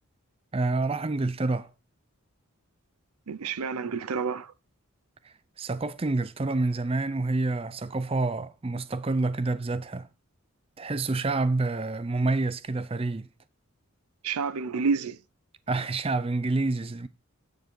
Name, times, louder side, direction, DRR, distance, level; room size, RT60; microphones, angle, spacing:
voice 1, 0.5-1.7 5.2-10.1 10.8-13.3 15.7-17.1, right 3 dB, 25° right, 0.5 m, -28 dB
voice 2, 3.3-4.5 14.2-15.2, right 5 dB, 85° right, 0.6 m, -29 dB
9.1 x 7.9 x 4.6 m
head